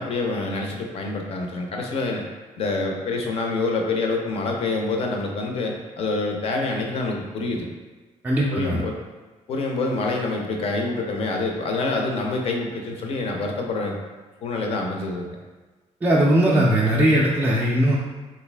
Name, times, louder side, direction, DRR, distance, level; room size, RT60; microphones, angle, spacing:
voice 1, 0.0-2.2 2.6-7.7 8.5-8.9 9.5-14.0 14.4-15.3, left 3 dB, 50° left, 1 dB, 0.5 m, -26 dB
voice 2, 8.2-8.8 16.0-18.0, right 1 dB, 15° right, -5 dB, 0.3 m, -19 dB
3.3 x 2.6 x 3.2 m, 1.3 s
cardioid pair, 165°, 13 cm